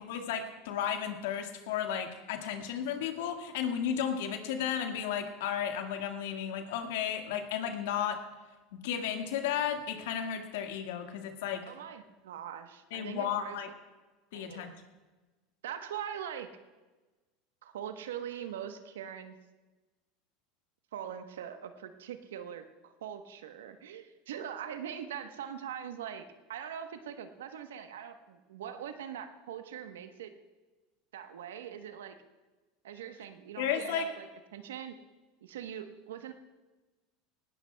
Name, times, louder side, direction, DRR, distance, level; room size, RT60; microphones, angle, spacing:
voice 1, 0.1-8.2 8.8-11.6 12.9-13.7 14.3-14.7 33.6-34.1, left 8 dB, 70° left, 4 dB, 1.7 m, -33 dB
voice 2, 11.6-13.6 14.3-14.8 15.6-16.5 17.6-19.4 20.9-30.3 31.1-32.2 32.8-35.0 35.4-36.3, right 9 dB, 80° right, 8 dB, 1.0 m, -42 dB
19.0 x 16.5 x 2.3 m, 1.2 s
hypercardioid pair, 85°, 0 cm